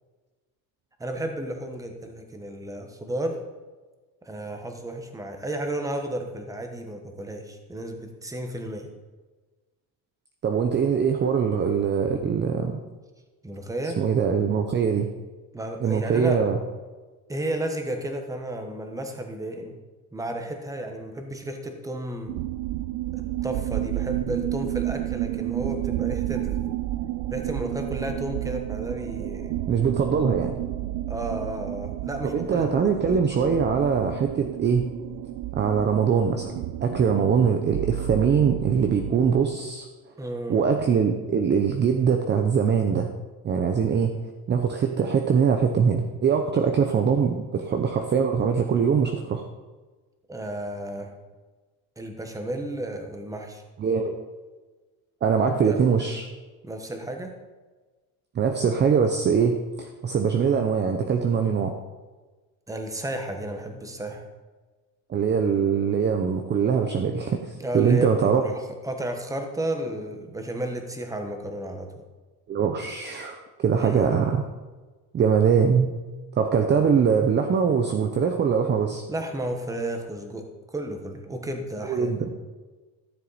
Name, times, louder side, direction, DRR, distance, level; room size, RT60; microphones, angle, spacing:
voice 1, 1.0-3.4 4.2-8.9 13.4-14.0 15.5-16.4 17.3-19.8 20.1-22.4 23.4-26.6 27.3-29.5 31.1-32.9 40.2-40.6 50.3-51.1 52.0-53.6 55.7-55.8 56.6-57.4 62.7-64.2 67.6-68.1 68.4-72.0 73.8-74.2 79.1-80.4 80.7-82.3, right 1 dB, 10° right, 4 dB, 1.1 m, -33 dB
voice 2, 10.4-12.8 14.0-15.1 15.8-16.6 29.7-30.6 32.3-34.9 35.5-36.5 36.8-39.9 40.5-43.1 43.4-44.1 44.5-49.5 53.8-54.2 55.2-56.3 58.3-61.7 65.1-67.4 67.7-68.4 72.5-74.4 75.1-75.9 76.3-79.0 81.9-82.3, right 6 dB, 25° right, 5 dB, 0.7 m, -22 dB
sound 1, 22.3-39.4, right 15 dB, 65° right, 0.6 m, -31 dB
13.0 x 7.3 x 4.1 m, 1.3 s
cardioid pair, 150°, 39 cm